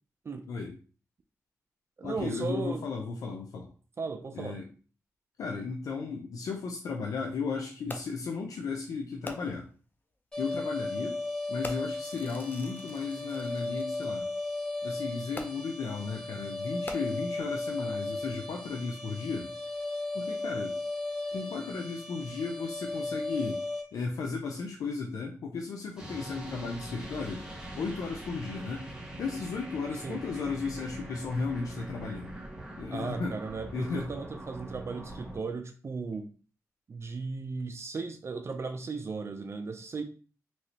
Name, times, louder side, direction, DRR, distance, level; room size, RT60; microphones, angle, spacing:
voice 1, 0.5-0.8 2.0-3.7 4.3-4.7 5.4-9.7 10.4-11.2 11.5-14.3 14.8-19.5 20.1-20.8 21.3-23.6 23.9-27.5 27.8-32.4 32.8-33.4 33.7-34.1, left 4 dB, 90° left, 2 dB, 0.4 m, -35 dB
voice 2, 2.0-2.8 4.0-4.6 30.0-30.2 32.9-36.3 36.9-40.0, right 4 dB, 50° right, 6 dB, 0.4 m, -36 dB
Fireworks, 7.9-8.3 9.2-9.8 10.6-10.8 11.6-14.1 15.3-15.9 16.7-17.5 18.2-18.3, left 2 dB, 35° left, 0.5 m, -45 dB
sound 1, 10.3-23.8, left 2 dB, 15° left, 1.8 m, -36 dB
sound 2, 26.0-35.4, right 1 dB, 10° right, 1.2 m, -43 dB
3.1 x 2.8 x 2.8 m, 0.38 s
cardioid pair, 70°, 6 cm